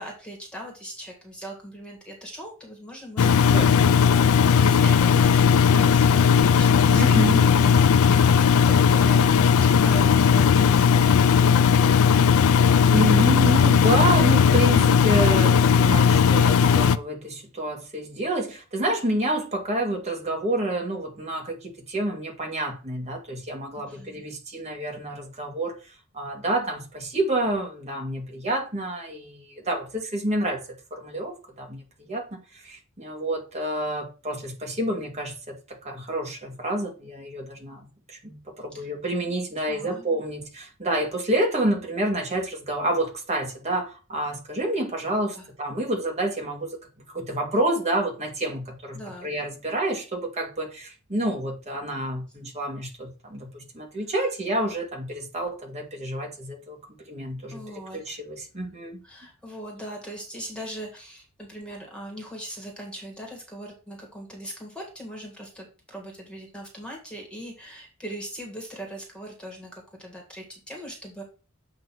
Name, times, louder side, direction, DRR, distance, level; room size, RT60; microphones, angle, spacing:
voice 1, 0.0-12.4 23.8-24.2 38.7-38.9 39.7-40.0 45.3-45.5 48.9-49.3 57.5-58.2 59.0-71.2, right 1 dB, 5° left, 1.7 m, -40 dB
Engine, 3.2-17.0, left 6 dB, 75° left, 0.4 m, -17 dB
voice 2, 6.9-7.5 12.9-25.7 26.1-30.6 30.9-31.8 32.1-32.3 32.5-46.8 47.1-56.8 57.1-57.6 57.9-59.0, right 1 dB, 30° right, 1.8 m, -28 dB
7.7 x 2.9 x 6.0 m
head